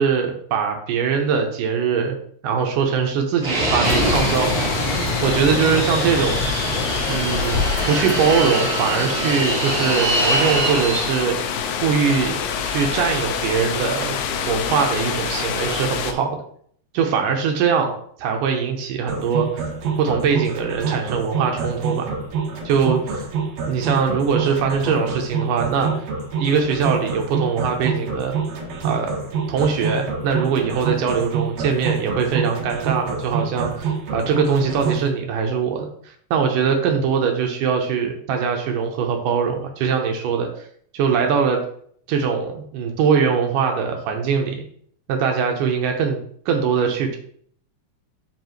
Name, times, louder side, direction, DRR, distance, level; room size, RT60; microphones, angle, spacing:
voice 1, 0.0-2.2 2.4-4.8 5.2-6.4 7.1-11.4 11.8-12.4 12.6-14.2 14.5-16.4 16.9-19.5 20.0-22.1 22.7-23.3 23.7-25.9 26.4-28.4 28.8-29.1 29.5-40.7 40.9-41.6 42.1-44.6 45.1-46.2 46.5-47.2, right 6 dB, 75° right, 3 dB, 2.3 m, -22 dB
Fixed-wing aircraft airplane, 3.4-11.2, right 1 dB, 20° right, 2.2 m, -24 dB
sound 1, 3.8-16.1, left 7 dB, 85° left, 1.6 m, -26 dB
sound 2, 19.1-35.1, right 6 dB, 60° right, 2.0 m, -26 dB
7.8 x 5.0 x 3.1 m, 0.62 s
omnidirectional pair, 4.0 m